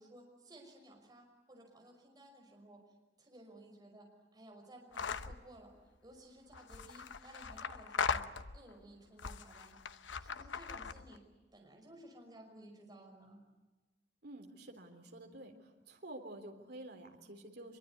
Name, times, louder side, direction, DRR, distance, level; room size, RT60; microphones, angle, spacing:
voice 1, 0.0-2.8 3.2-5.7 6.0-8.3 8.5-9.7 10.2-11.2 11.5-13.4, right 1 dB, 20° right, 1 dB, 5.6 m, -56 dB
sound 1, 4.9-5.4 6.5-8.7 9.2-11.2, left 6 dB, 90° left, 0.9 m, -39 dB
voice 2, 14.2-17.8, right 1 dB, 65° right, 4 dB, 3.5 m, -50 dB
24.5 x 23.0 x 9.6 m, 1.2 s
head